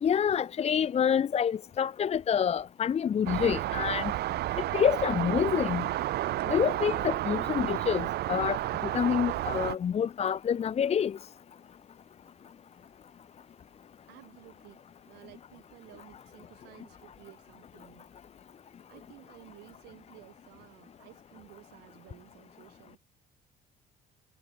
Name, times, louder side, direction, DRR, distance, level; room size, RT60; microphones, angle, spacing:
voice 1, 0.0-4.1 4.7-5.8 6.5-8.6 8.9-11.2, left 8 dB, 40° left, 0.9 m, -27 dB
sound 1, 3.3-9.8, right 15 dB, 75° right, 2.7 m, -31 dB
voice 2, 14.1-18.1 18.9-23.0, right 20 dB, 90° right, 5.6 m, -54 dB
cardioid pair, 110°, 17 cm